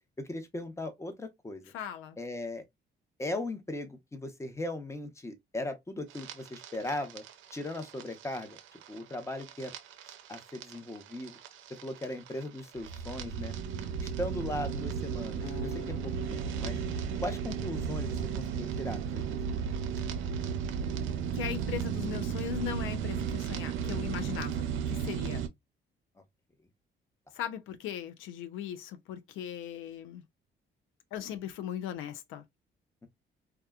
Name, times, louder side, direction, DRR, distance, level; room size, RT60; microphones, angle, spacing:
voice 1, 0.2-1.6 2.2-2.6 3.2-7.2 7.5-8.6 8.9-9.7 10.3-11.4 11.8-13.5 14.0-16.8 17.2-19.7, left 1 dB, 15° left, 0.7 m, -38 dB
voice 2, 1.7-2.2 21.3-25.5 27.3-30.2 31.1-32.4, left 10 dB, 90° left, 0.5 m, -38 dB
sound 1, 6.1-25.5, right 7 dB, 85° right, 0.5 m, -35 dB
Acoustic guitar, 15.4-18.7, left 7 dB, 30° left, 0.4 m, -49 dB
2.8 x 2.3 x 2.3 m
cardioid pair, 90°, 20 cm